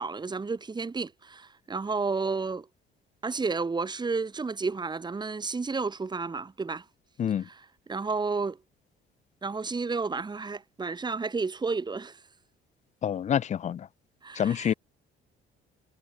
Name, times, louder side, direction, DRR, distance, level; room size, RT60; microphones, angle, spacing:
voice 1, 0.0-2.7 3.2-6.8 7.4-8.6 9.4-12.2 14.2-14.7, right 4 dB, 20° right, 2.6 m, -31 dB
voice 2, 13.0-13.9 14.4-14.7, left 9 dB, 35° left, 0.4 m, -27 dB
cardioid pair, 130°, 21 cm